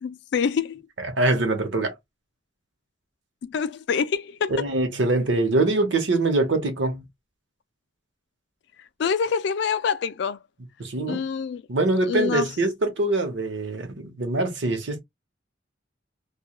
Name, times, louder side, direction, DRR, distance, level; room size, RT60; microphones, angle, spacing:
voice 1, 0.0-0.8 3.4-4.7 9.0-10.4 11.0-11.6 12.1-12.5, left 6 dB, 60° left, 0.3 m, -26 dB
voice 2, 1.0-1.9 4.5-7.0 10.8-11.2 11.7-15.0, right 2 dB, 70° right, 0.8 m, -23 dB
2.3 x 2.2 x 2.9 m
head